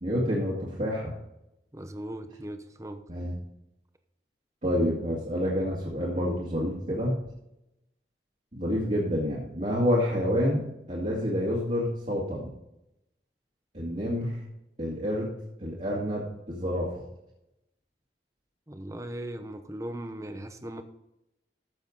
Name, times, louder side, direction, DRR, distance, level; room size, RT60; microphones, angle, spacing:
voice 1, 0.0-1.1 3.1-3.3 4.6-7.1 8.5-10.6 10.9-12.5 13.7-14.4 14.8-15.3 15.6-17.1, equal, 40° right, -6 dB, 2.3 m, -28 dB
voice 2, 1.7-3.0 18.7-20.8, right 1 dB, 20° right, 8 dB, 0.9 m, -38 dB
14.0 x 7.1 x 4.0 m, 0.87 s
head